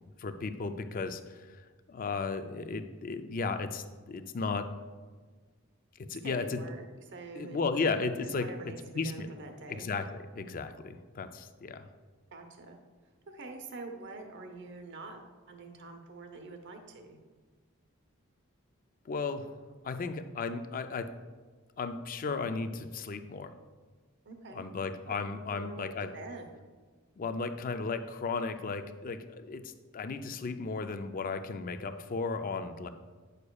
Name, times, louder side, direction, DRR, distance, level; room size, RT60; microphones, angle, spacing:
voice 1, 0.2-4.8 6.1-6.6 7.4-9.3 9.7-11.9 19.1-19.5 19.8-21.2 21.8-23.5 24.5-26.1 27.2-32.9, left 4 dB, 40° left, 9 dB, 0.4 m, -35 dB
voice 2, 6.2-7.6 8.4-9.9 12.3-12.8 13.3-15.2 15.5-17.2 24.3-24.6 25.1-25.2 25.5-26.5, right 3 dB, 60° right, 4 dB, 0.8 m, -45 dB
9.5 x 6.6 x 2.3 m, 1.4 s
head